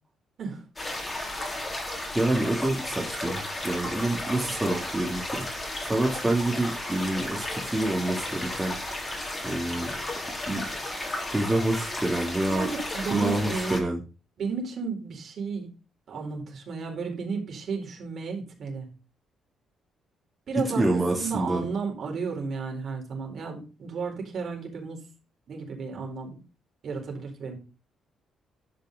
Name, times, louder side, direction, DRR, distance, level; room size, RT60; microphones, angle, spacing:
sound 1, 0.8-13.8, left 1 dB, 20° left, 3.8 m, -34 dB
voice 1, 2.1-5.4 5.8-8.8 9.4-9.9 10.5-10.6 11.3-12.7 13.1-14.0 20.7-21.6, right 1 dB, 15° right, -2 dB, 3.0 m, -27 dB
voice 2, 12.5-13.8 14.4-15.7 16.1-18.9 20.5-25.0 25.5-26.4 26.8-27.6, right 5 dB, 60° right, 1 dB, 4.4 m, -33 dB
11.5 x 5.6 x 5.3 m, 0.33 s
cardioid pair, 90°, 0 cm